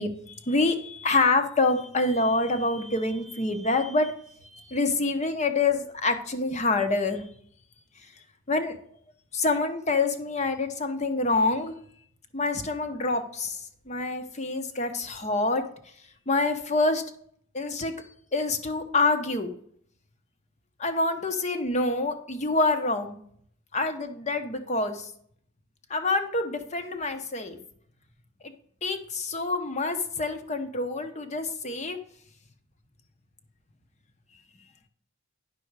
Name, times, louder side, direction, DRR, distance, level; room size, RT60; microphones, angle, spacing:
voice 1, 0.0-4.1 4.4-7.2 8.5-8.8 9.3-11.7 12.3-15.6 16.3-17.0 17.5-17.9 18.3-19.5 20.8-23.2 23.7-25.1 25.9-27.6 28.4-28.5 28.8-32.0, left 3 dB, 35° left, 7 dB, 0.9 m, -26 dB
9.9 x 6.1 x 4.7 m, 0.64 s
head